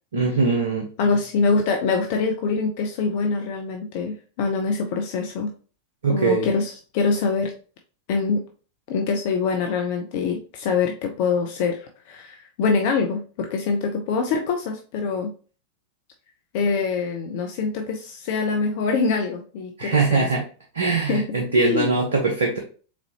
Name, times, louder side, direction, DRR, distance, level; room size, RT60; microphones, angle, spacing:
voice 1, 0.1-0.9 6.0-6.5 19.8-20.4 20.7-22.6, right 4 dB, 70° right, 1 dB, 0.9 m, -21 dB
voice 2, 1.0-5.5 6.1-7.5 8.1-8.4 8.9-15.3 16.5-20.3 21.1-21.2 21.6-21.9, left 4 dB, 50° left, 3 dB, 0.6 m, -24 dB
4.2 x 4.0 x 2.8 m, 0.38 s
figure-of-eight pair, 90°, 0 cm